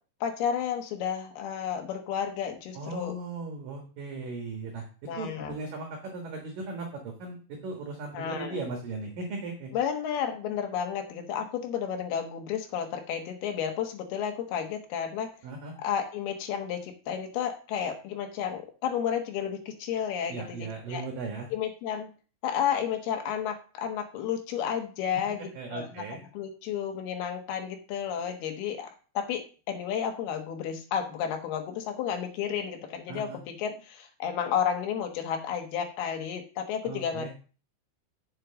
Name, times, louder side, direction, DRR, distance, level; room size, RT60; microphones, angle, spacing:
voice 1, 0.2-3.1 5.1-5.5 8.1-8.6 9.7-15.3 15.8-21.0 21.5-22.1 22.4-25.4 25.7-26.0 26.3-29.4 29.7-37.4, left 8 dB, 65° left, 4 dB, 2.7 m, -32 dB
voice 2, 2.7-9.7 15.4-15.7 20.3-21.5 25.5-26.2 33.1-33.4 36.8-37.3, right 3 dB, 65° right, 2 dB, 2.3 m, -37 dB
7.8 x 6.6 x 6.3 m, 0.37 s
omnidirectional pair, 5.9 m